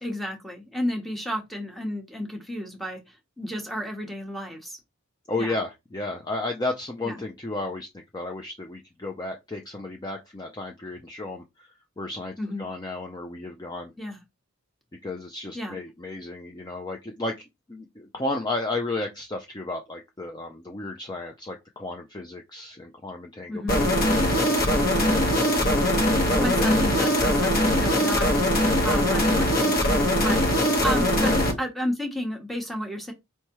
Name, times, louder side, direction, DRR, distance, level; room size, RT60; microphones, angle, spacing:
voice 1, 0.0-4.8 5.4-5.5 7.0-7.2 12.4-12.7 14.0-14.2 15.5-15.8 23.5-23.8 26.3-33.1, equal, ahead, 0.9 m, -32 dB
voice 2, 5.3-11.7 12.0-13.9 15.0-23.8 26.3-27.0 31.2-31.4, left 2 dB, 20° left, 0.4 m, -33 dB
sound 1, 23.7-31.5, left 1 dB, 40° left, 1.1 m, -21 dB
4.5 x 3.1 x 2.9 m
head